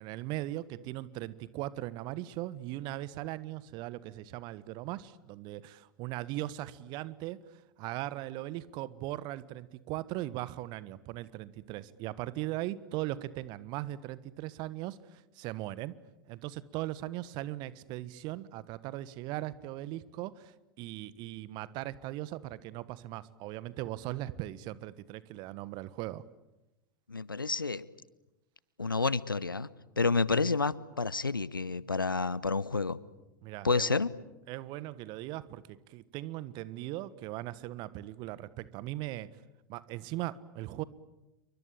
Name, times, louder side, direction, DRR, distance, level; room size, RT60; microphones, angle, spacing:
voice 1, 0.0-7.4 7.8-16.0 16.3-26.2 33.4-34.0 34.5-39.3 39.7-40.8, right 16 dB, 40° right, 18 dB, 1.4 m, -39 dB
voice 2, 27.1-27.8 28.8-29.7 30.0-33.0 33.6-34.1, left 4 dB, 85° left, 21 dB, 1.0 m, -29 dB
29.0 x 24.0 x 8.7 m, 0.96 s
figure-of-eight pair, 85°, 11 cm